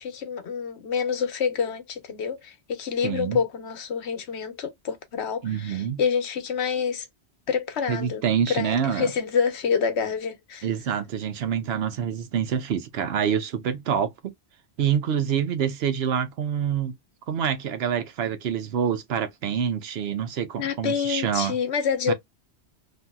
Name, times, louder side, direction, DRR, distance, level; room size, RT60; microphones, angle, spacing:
voice 1, 0.0-7.1 7.5-10.7 20.6-22.1, left 6 dB, 85° left, 1.1 m, -27 dB
voice 2, 3.0-3.4 5.4-6.0 7.9-9.1 10.6-14.3 14.8-16.9 17.3-21.6 22.1-22.2, right 8 dB, 70° right, 0.8 m, -26 dB
2.8 x 2.6 x 2.3 m
omnidirectional pair, 1.1 m